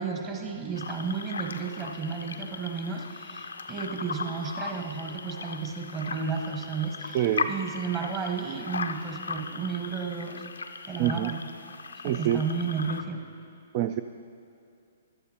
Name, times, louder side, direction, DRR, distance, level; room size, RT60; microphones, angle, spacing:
voice 1, 0.0-10.4 10.8-11.4 12.0-13.2, right 5 dB, 25° right, 3 dB, 1.2 m, -33 dB
sound 1, 0.7-13.0, left 4 dB, 80° left, 0.5 m, -37 dB
voice 2, 7.1-7.5 11.0-11.3 12.0-12.4 13.7-14.0, right 12 dB, 40° right, 10 dB, 0.3 m, -26 dB
15.5 x 11.5 x 2.9 m, 2.4 s
hypercardioid pair, 130°, 0 cm